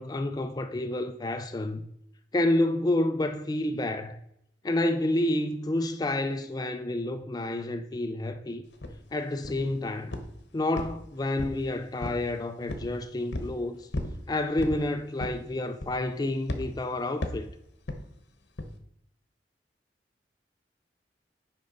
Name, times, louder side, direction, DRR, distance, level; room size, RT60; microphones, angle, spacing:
voice 1, 0.0-1.8 2.3-4.2 4.6-8.6 9.1-10.1 10.5-13.9 14.3-17.5, left 1 dB, 20° left, 0.4 m, -29 dB
sound 1, 8.8-9.0 9.4-9.8 10.1-10.4 10.8-11.7 12.0-12.3 12.7-12.9 13.3-13.5 13.9-14.2 14.6-14.8 15.2-15.5 15.8-16.1 16.5-16.7 17.2-17.5 17.9-18.1 18.6-18.7, left 1 dB, 80° left, 1.0 m, -34 dB
8.4 x 5.3 x 3.9 m
head